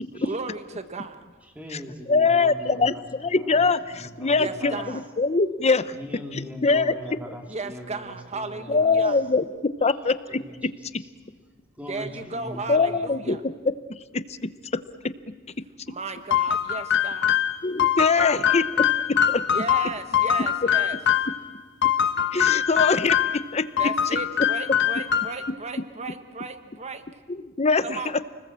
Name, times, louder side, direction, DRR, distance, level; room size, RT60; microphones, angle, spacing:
voice 1, 0.2-1.2 4.4-5.0 7.5-9.2 11.9-13.4 15.9-17.3 19.5-21.0 23.8-27.0 27.8-28.1, right 3 dB, 30° right, 9 dB, 1.3 m, -35 dB
voice 2, 1.4-3.0 3.3-4.8 5.9-9.1 9.8-11.1 11.7-13.1, equal, 5° right, 1 dB, 3.2 m, -41 dB
voice 3, 2.1-2.9 3.2-5.9 6.3-6.9 8.7-10.4 10.9-11.0 12.7-13.4 14.1-14.8 17.6-18.9 19.3-19.4 22.3-23.7 27.3-28.2, left 4 dB, 30° left, 13 dB, 0.8 m, -23 dB
sound 1, 16.3-21.4 21.8-23.4 23.8-25.5, left 9 dB, 55° left, 1.2 m, -23 dB
29.5 x 20.5 x 7.5 m, 1.4 s
head